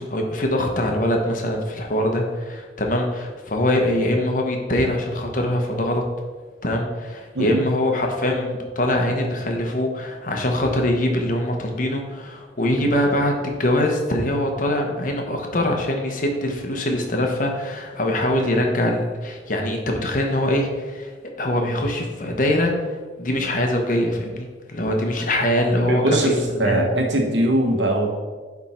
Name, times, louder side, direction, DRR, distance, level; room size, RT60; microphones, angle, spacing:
voice 1, 0.0-6.0 6.6-21.1 21.4-22.7 23.2-26.3 26.6-26.8, left 1 dB, 45° left, 2 dB, 1.1 m, -23 dB
voice 2, 25.9-28.2, right 1 dB, 90° right, 2 dB, 1.3 m, -21 dB
9.6 x 3.6 x 4.4 m, 1.4 s
head